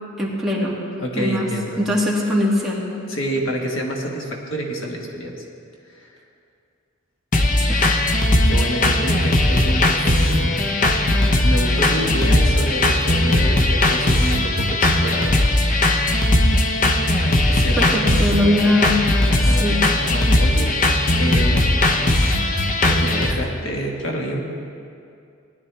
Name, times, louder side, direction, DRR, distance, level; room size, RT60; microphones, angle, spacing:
voice 1, 0.2-0.8 1.1-1.5 1.8-2.8 7.7-7.8 17.8-19.0 19.6-19.8, left 1 dB, ahead, -6 dB, 2.0 m, -20 dB
voice 2, 1.0-1.8 3.1-5.4 5.9-6.1 7.7-7.9 8.5-10.7 11.4-15.4 17.5-18.0 19.3-19.7 20.0-20.7 21.2-21.8 22.1-22.5 22.8-24.4, equal, 70° left, 0 dB, 1.5 m, -28 dB
sound 1, 7.3-23.3, left 1 dB, 40° left, 0.8 m, -18 dB
18.5 x 11.0 x 3.3 m, 2.4 s
head